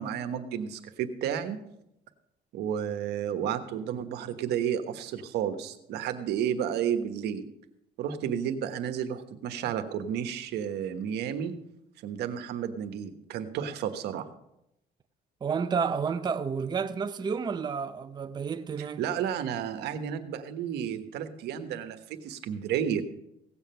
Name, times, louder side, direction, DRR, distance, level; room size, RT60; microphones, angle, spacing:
voice 1, 0.0-1.6 2.5-7.4 8.0-11.5 12.0-14.3 18.8-23.0, right 9 dB, 80° right, 1.2 m, -32 dB
voice 2, 15.4-19.0, right 6 dB, 25° right, 0.6 m, -30 dB
17.0 x 7.3 x 5.7 m
cardioid pair, 110°, 17 cm